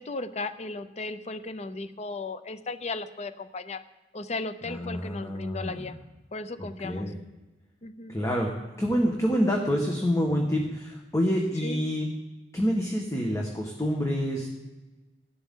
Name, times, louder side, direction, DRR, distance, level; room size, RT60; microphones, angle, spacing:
voice 1, 0.0-3.8 4.1-6.0 6.3-7.1 7.8-8.2 11.6-11.8, left 3 dB, 40° left, 11 dB, 0.7 m, -35 dB
voice 2, 4.6-5.8 6.8-7.1 8.1-12.1 12.5-14.5, equal, 15° left, 0 dB, 1.4 m, -27 dB
18.0 x 11.5 x 3.7 m, 1.2 s
head